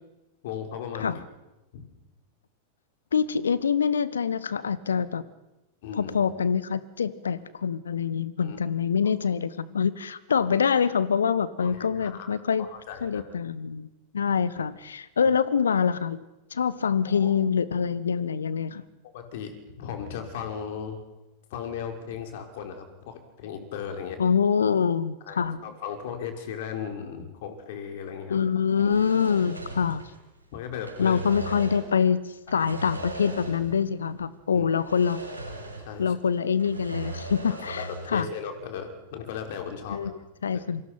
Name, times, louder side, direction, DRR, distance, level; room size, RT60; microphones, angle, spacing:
voice 1, 0.4-1.1 1.7-1.8 5.8-6.1 8.4-8.6 9.0-9.1 11.6-12.3 12.6-13.2 17.1-17.3 19.1-19.5 19.8-21.0 21.5-24.2 25.3-28.4 30.5-31.2 32.5-32.6 34.5-34.7 35.8-36.2 37.4-37.8 38.1-40.1, left 7 dB, 55° left, 5 dB, 4.7 m, -36 dB
voice 2, 3.1-5.2 6.0-12.7 13.0-13.9 14.1-16.2 16.5-18.8 24.2-25.6 28.3-30.0 31.0-32.2 32.5-35.2 36.0-38.3 39.9-40.8, left 6 dB, 70° left, 17 dB, 1.3 m, -25 dB
sound 1, 28.7-30.4 30.7-31.9 32.4-33.8 34.1-34.2 34.8-36.0 36.3-38.2, right 2 dB, 85° right, 6.5 m, -38 dB
27.5 x 25.5 x 5.9 m, 1.0 s
figure-of-eight pair, 90°, 0 cm